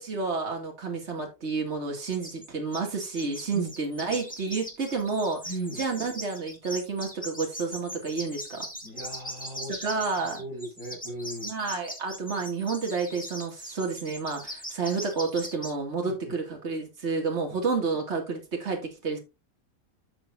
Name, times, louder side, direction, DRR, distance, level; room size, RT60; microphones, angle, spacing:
voice 1, 0.0-5.4 5.8-8.7 9.8-10.4 11.4-19.2, right 4 dB, 40° right, 2.7 m, -30 dB
sound 1, 2.0-2.5 2.7-15.7, equal, 5° left, 2.2 m, -40 dB
voice 2, 5.4-5.8 8.8-9.8 10.4-11.5 16.0-16.4 17.5-17.6, right 1 dB, 55° right, 6.1 m, -37 dB
11.5 x 6.9 x 2.7 m
omnidirectional pair, 1.8 m